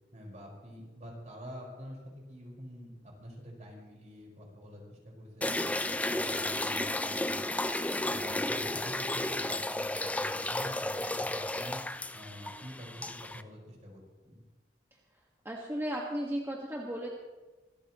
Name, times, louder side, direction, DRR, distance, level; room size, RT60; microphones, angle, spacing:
voice 1, 0.1-11.8 12.1-14.4, equal, 45° right, -2 dB, 5.2 m, -47 dB
sound 1, 5.4-13.4, left 1 dB, 10° left, 0.5 m, -33 dB
voice 2, 7.9-8.3 15.4-17.1, equal, 15° right, -2 dB, 1.7 m, -36 dB
26.0 x 13.5 x 3.1 m, 1.2 s
head